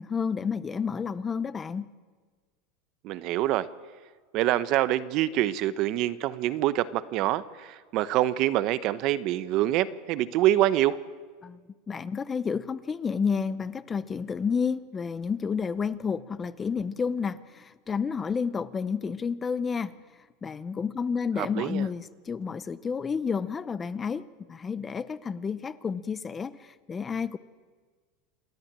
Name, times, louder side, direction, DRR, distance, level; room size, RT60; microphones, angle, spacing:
voice 1, 0.0-1.9 11.4-11.6 11.9-19.9 20.4-27.4, left 6 dB, 20° left, 16 dB, 0.6 m, -30 dB
voice 2, 3.0-3.7 4.3-11.0 21.4-21.9, right 14 dB, 50° right, 15 dB, 0.8 m, -25 dB
27.5 x 11.0 x 8.8 m, 1.5 s
supercardioid pair, 135°, 0 cm